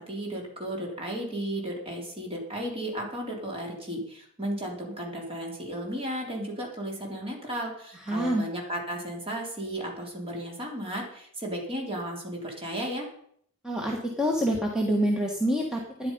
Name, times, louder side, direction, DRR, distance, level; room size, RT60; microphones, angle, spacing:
voice 1, 0.0-13.1, right 1 dB, 25° right, -1 dB, 3.7 m, -34 dB
voice 2, 8.1-8.5 13.6-16.1, equal, 5° right, -1 dB, 1.5 m, -26 dB
12.5 x 10.0 x 5.5 m, 0.66 s
head